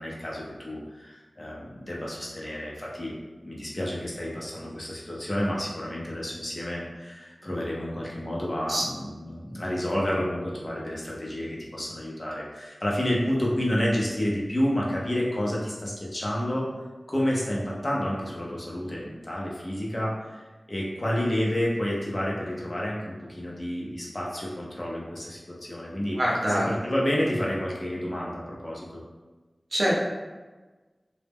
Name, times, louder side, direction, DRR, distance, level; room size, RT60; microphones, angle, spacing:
voice 1, 0.0-3.1 3.4-16.7 17.1-20.4 20.7-26.2 26.7-29.0, equal, 40° left, -4 dB, 0.6 m, -30 dB
voice 2, 26.1-26.7 29.7-29.9, equal, 55° right, -6 dB, 0.7 m, -24 dB
2.2 x 2.0 x 3.4 m, 1.2 s
wide cardioid pair, 55°, 0 cm